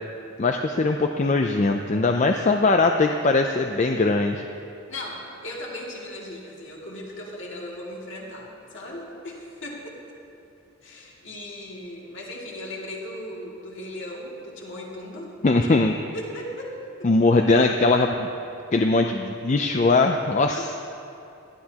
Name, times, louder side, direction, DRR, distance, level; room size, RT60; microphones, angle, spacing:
voice 1, 0.4-4.4 15.4-15.9 17.0-18.3 18.7-20.7, left 3 dB, 35° left, 4 dB, 0.4 m, -20 dB
voice 2, 4.9-10.0 10.8-15.3 16.1-17.1 20.5-20.8, left 1 dB, 55° left, -4 dB, 2.5 m, -37 dB
18.5 x 13.5 x 2.9 m, 2.8 s
head